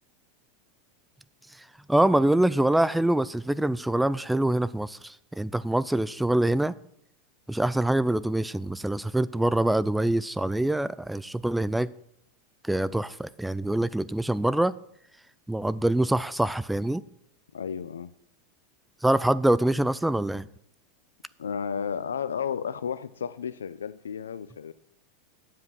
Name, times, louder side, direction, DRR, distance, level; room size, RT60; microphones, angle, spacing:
voice 1, 1.9-6.7 7.5-11.9 12.6-14.7 15.5-17.0 19.0-20.5, right 1 dB, 5° right, 0.4 m, -25 dB
voice 2, 17.5-18.1 21.4-24.7, left 7 dB, 85° left, 0.5 m, -32 dB
9.5 x 7.6 x 6.2 m
hypercardioid pair, 95°, 0 cm